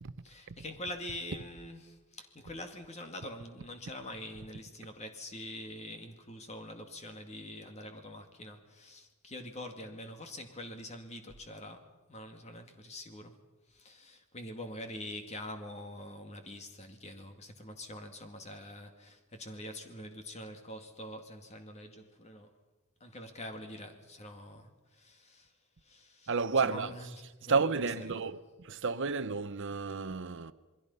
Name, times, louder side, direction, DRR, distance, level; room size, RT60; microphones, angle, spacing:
voice 1, 0.2-13.3 13.7-22.5 23.0-25.5 25.9-26.3 26.6-27.1 27.4-27.6, left 1 dB, 30° left, 2.2 m, -45 dB
voice 2, 26.3-27.1 27.5-30.5, right 4 dB, 55° right, 0.7 m, -31 dB
28.0 x 21.5 x 5.5 m
head